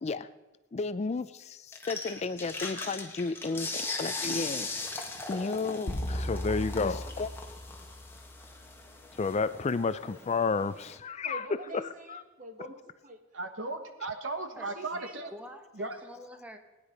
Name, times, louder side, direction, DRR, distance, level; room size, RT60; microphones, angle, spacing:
voice 1, 0.7-4.7 5.3-7.3 9.2-11.4 12.1-12.2, left 4 dB, 35° left, 14 dB, 0.4 m, -32 dB
sound 1, 1.7-11.0, left 3 dB, 10° left, 1.6 m, -39 dB
sound 2, 5.9-8.4, equal, 60° left, 1.5 m, -36 dB
voice 2, 11.2-12.8 13.0-13.2 14.5-15.3, right 2 dB, 40° right, 6 dB, 1.6 m, -45 dB
voice 3, 13.3-15.3 15.8-16.0, right 3 dB, 70° right, 7 dB, 1.4 m, -36 dB
voice 4, 14.6-16.6, equal, 5° right, 4 dB, 1.3 m, -47 dB
19.0 x 9.9 x 5.2 m, 1.1 s
head